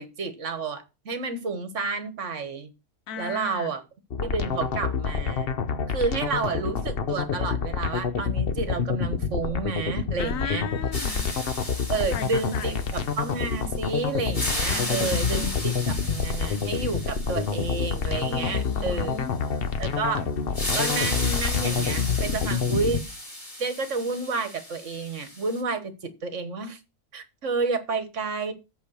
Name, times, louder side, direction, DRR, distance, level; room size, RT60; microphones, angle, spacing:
voice 1, 0.0-2.7 3.2-3.8 4.2-5.5 5.9-10.7 11.9-19.2 19.8-20.2 20.7-23.0 23.6-26.8 27.1-28.5, right 4 dB, 60° right, 1.6 m, -30 dB
voice 2, 3.1-3.7 10.2-11.3 11.6-12.7 14.7-15.5 16.8-16.9 18.2-19.3, left 7 dB, 80° left, 1.2 m, -37 dB
sound 1, 4.1-23.0, left 6 dB, 50° left, 1.0 m, -28 dB
sound 2, 10.9-13.8 14.2-19.0 20.5-25.6, left 1 dB, 35° left, 3.5 m, -35 dB
8.4 x 5.3 x 6.3 m
omnidirectional pair, 1.4 m